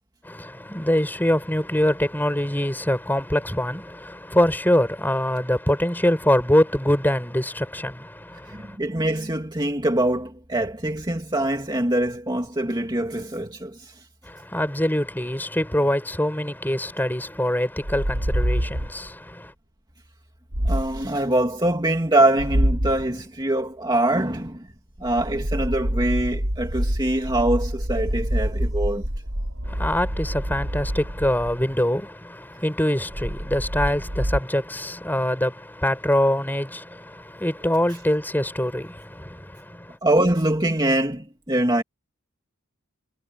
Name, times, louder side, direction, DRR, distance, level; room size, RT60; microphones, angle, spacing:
voice 1, 0.2-8.8 14.2-19.5 29.6-40.0, left 1 dB, 10° left, 6.0 m, -24 dB
voice 2, 8.5-13.9 20.6-24.7 25.0-29.1 40.0-41.8, right 1 dB, 20° right, 2.3 m, -23 dB
sound 1, 17.8-19.1 20.5-21.1 22.4-23.1 25.0-31.7 33.1-34.4, equal, 85° right, 4.7 m, -26 dB
head